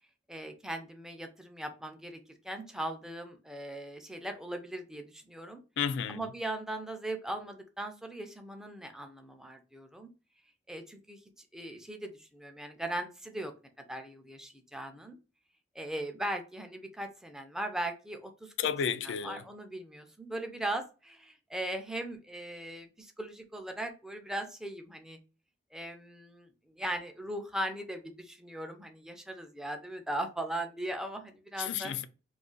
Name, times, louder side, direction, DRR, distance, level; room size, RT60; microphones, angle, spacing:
voice 1, 0.3-5.6 6.1-10.1 10.7-11.2 11.5-13.5 13.8-15.2 15.7-18.5 19.0-25.2 25.7-31.9, right 1 dB, 5° right, 0.4 m, -39 dB
voice 2, 5.8-6.3 18.6-19.4 31.6-32.1, left 7 dB, 70° left, 0.3 m, -32 dB
2.4 x 2.3 x 3.7 m
head